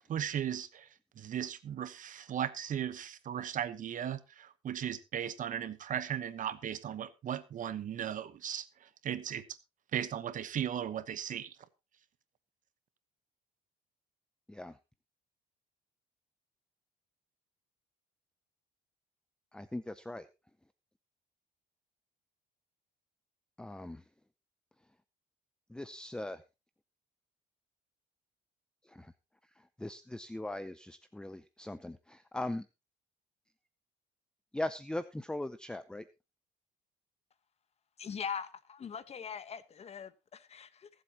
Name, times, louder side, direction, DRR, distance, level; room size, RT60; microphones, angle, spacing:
voice 1, 0.1-0.9 1.2-8.6 9.0-9.4 9.9-11.6, right 9 dB, 50° right, 1.1 m, -36 dB
voice 2, 19.5-20.3 23.6-24.0 25.7-26.4 28.9-29.1 29.6-32.7 34.5-36.0, left 1 dB, 5° left, 0.6 m, -40 dB
voice 3, 38.0-40.9, left 7 dB, 40° left, 1.1 m, -41 dB
23.5 x 8.0 x 2.9 m
cardioid pair, 110°, 17 cm